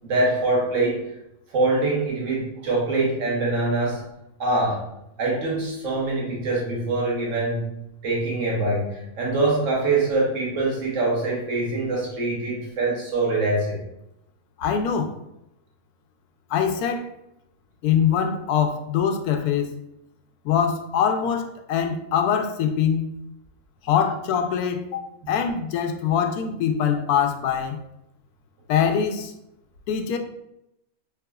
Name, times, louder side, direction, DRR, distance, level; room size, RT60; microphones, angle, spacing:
voice 1, 0.0-1.1 1.5-4.0 4.4-4.9 5.2-7.7 8.0-13.8, right 2 dB, 60° right, -4 dB, 1.5 m, -24 dB
voice 2, 14.6-15.2 16.5-17.1 17.8-19.7 20.4-23.1 23.8-24.9 25.3-27.8 28.7-29.3 29.9-30.2, left 7 dB, 90° left, 5 dB, 1.1 m, -23 dB
4.7 x 3.4 x 2.3 m, 0.85 s
omnidirectional pair, 1.6 m